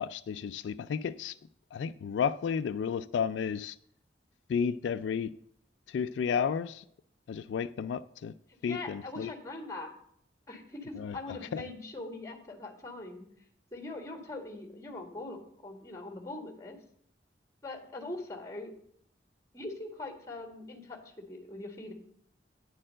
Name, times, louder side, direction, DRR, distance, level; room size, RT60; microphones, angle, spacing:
voice 1, 0.0-1.3 1.7-3.8 4.5-5.3 5.9-6.8 7.3-8.3 8.6-9.3 11.0-11.2 11.5-11.6, left 6 dB, 85° left, 0.3 m, -32 dB
voice 2, 8.6-9.9 10.5-13.2 13.7-16.8 17.6-18.7 19.5-21.9, left 2 dB, 20° left, 1.7 m, -42 dB
9.9 x 4.4 x 7.4 m
head